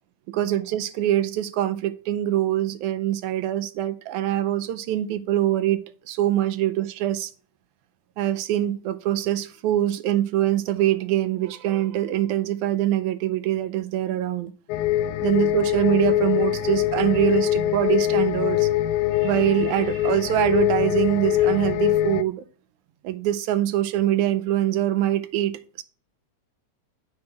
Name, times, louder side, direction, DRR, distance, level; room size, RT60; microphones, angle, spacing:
voice 1, 0.3-7.3 8.2-14.5 15.2-18.7 19.2-22.4 23.0-25.8, right 13 dB, 85° right, 2.0 m, -24 dB
sound 1, 14.7-22.2, left 13 dB, 85° left, 2.0 m, -23 dB
7.9 x 4.8 x 5.9 m
omnidirectional pair, 3.4 m